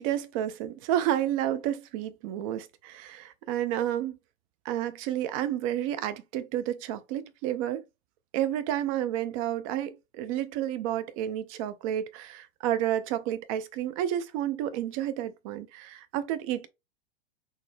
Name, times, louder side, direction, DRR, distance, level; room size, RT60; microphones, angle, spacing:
voice 1, 0.0-4.2 4.6-7.8 8.3-16.7, right 11 dB, 35° right, 0.5 m, -30 dB
3.9 x 2.0 x 3.2 m
figure-of-eight pair, 95°, 29 cm